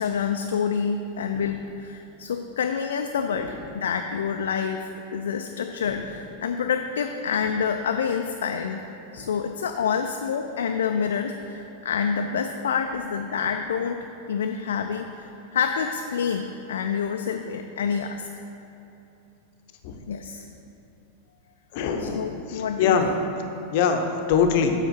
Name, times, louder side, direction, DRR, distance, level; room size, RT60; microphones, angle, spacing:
voice 1, 0.0-8.8 9.1-18.4 20.1-20.5 22.0-23.2, left 6 dB, 65° left, 5 dB, 0.3 m, -28 dB
voice 2, 21.7-23.1 23.7-24.7, left 6 dB, 50° left, 5 dB, 0.7 m, -24 dB
7.7 x 4.8 x 5.8 m, 3.0 s
figure-of-eight pair, 90°, 0 cm